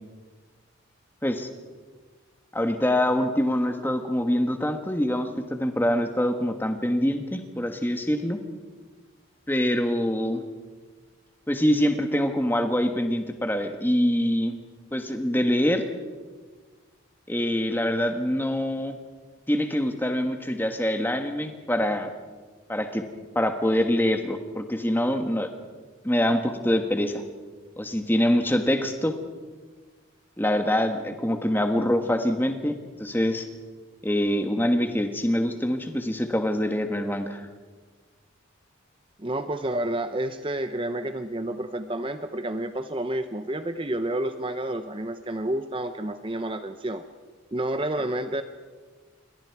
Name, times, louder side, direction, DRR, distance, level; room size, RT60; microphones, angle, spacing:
voice 1, 2.5-8.4 9.5-10.4 11.5-14.6 14.9-15.8 17.3-19.0 19.5-22.1 22.7-23.0 23.3-25.5 26.0-27.2 27.8-29.2 30.4-33.5 34.0-37.5, equal, 10° left, 6 dB, 1.4 m, -25 dB
voice 2, 39.2-47.0 47.5-48.4, right 1 dB, 25° right, 9 dB, 0.7 m, -29 dB
27.5 x 23.0 x 4.7 m, 1.4 s
head